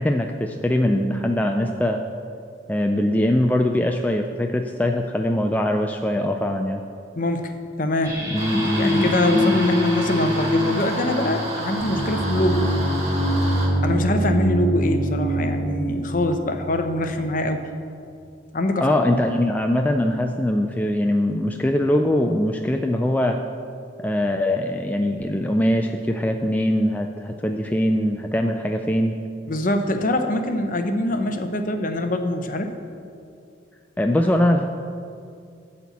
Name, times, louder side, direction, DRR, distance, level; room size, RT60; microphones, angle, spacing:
voice 1, 0.0-2.0 2.7-6.8 8.3-9.6 18.8-23.4 24.0-29.2 34.0-34.7, left 1 dB, 10° left, 3 dB, 0.3 m, -22 dB
voice 2, 7.2-8.2 8.8-12.7 13.8-17.7 18.5-18.9 29.5-32.7, left 1 dB, 45° left, 6 dB, 0.7 m, -24 dB
sound 1, 8.0-17.4, equal, 15° right, 1.5 m, -25 dB
sound 2, 8.3-13.7, right 1 dB, 35° right, 1.7 m, -31 dB
12.5 x 4.3 x 8.3 m, 2.4 s
head